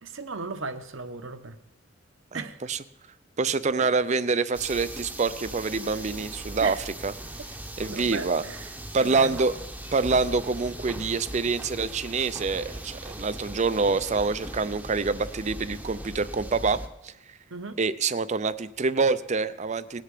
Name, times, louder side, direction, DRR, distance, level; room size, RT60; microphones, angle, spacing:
voice 1, 0.0-1.6 2.3-2.6 3.8-3.9 6.6-6.8 7.9-8.6 9.0-9.4 17.5-17.7, right 3 dB, 65° right, 1.0 m, -36 dB
voice 2, 2.3-2.8 3.4-7.1 7.8-8.4 8.9-9.6 9.9-17.1 17.8-20.0, right 4 dB, 35° right, 0.5 m, -26 dB
sound 1, 4.5-16.9, right 1 dB, 5° right, 0.8 m, -39 dB
19.0 x 6.7 x 7.6 m
head